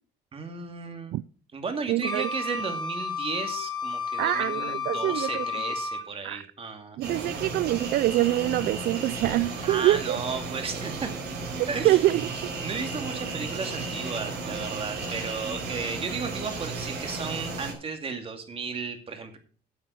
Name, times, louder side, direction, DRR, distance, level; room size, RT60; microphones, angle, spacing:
voice 1, 0.3-1.1 1.5-7.0 9.6-11.1 11.7-12.0 12.6-19.4, right 4 dB, 35° right, 2.5 m, -34 dB
voice 2, 1.9-2.3 4.2-5.4 6.2-6.4 7.0-10.2 11.8-12.2, right 16 dB, 65° right, 0.4 m, -25 dB
Wind instrument woodwind instrument, 2.0-6.1, left 5 dB, 25° left, 2.0 m, -32 dB
sound 1, 7.0-17.7, right 3 dB, 90° right, 4.1 m, -34 dB
9.5 x 7.9 x 6.1 m
cardioid pair, 110°, 17 cm